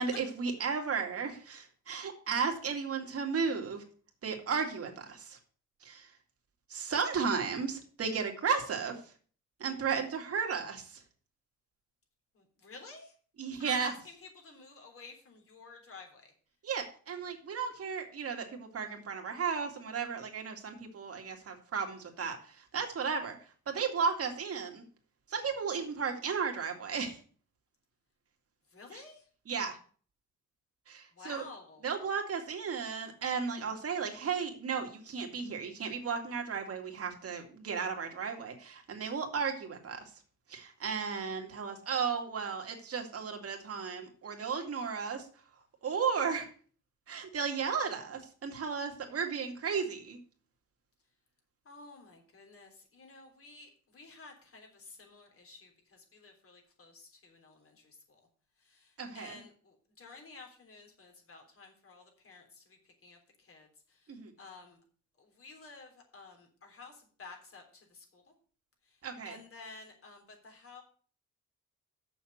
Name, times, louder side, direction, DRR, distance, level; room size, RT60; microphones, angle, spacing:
voice 1, 0.0-3.8 4.2-5.4 5.8-6.1 6.7-9.0 9.6-11.0 13.4-13.9 16.6-23.4 23.7-24.8 25.3-27.2 28.9-29.0 29.5-29.8 30.9-31.4 31.8-40.1 40.5-45.3 45.8-46.5 47.1-50.2 59.0-59.4 64.1-64.3 69.0-69.4, right 6 dB, 50° right, 3 dB, 2.3 m, -34 dB
voice 2, 12.3-13.1 13.5-16.3 28.7-29.3 31.1-31.8 51.7-58.2 58.6-64.8 65.2-68.3 68.8-70.8, left 3 dB, 45° left, 3 dB, 3.5 m, -52 dB
7.0 x 6.3 x 7.8 m, 0.43 s
cardioid pair, 90°, 30 cm